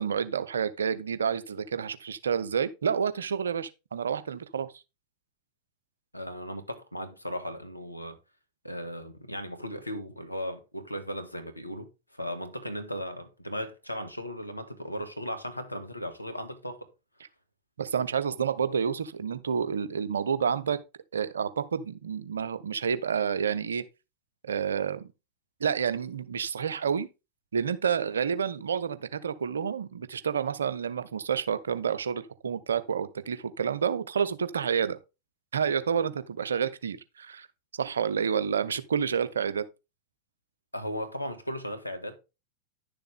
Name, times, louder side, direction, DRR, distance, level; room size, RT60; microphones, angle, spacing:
voice 1, 0.0-4.7 17.8-20.8 21.1-23.8 24.4-25.1 25.6-27.1 27.5-35.0 35.5-37.5 37.7-39.6, right 7 dB, 70° right, 0.9 m, -29 dB
voice 2, 6.1-8.2 8.6-16.9 40.7-42.2, equal, 90° left, 1.7 m, -37 dB
11.0 x 6.9 x 3.6 m
figure-of-eight pair, 90°, 0 cm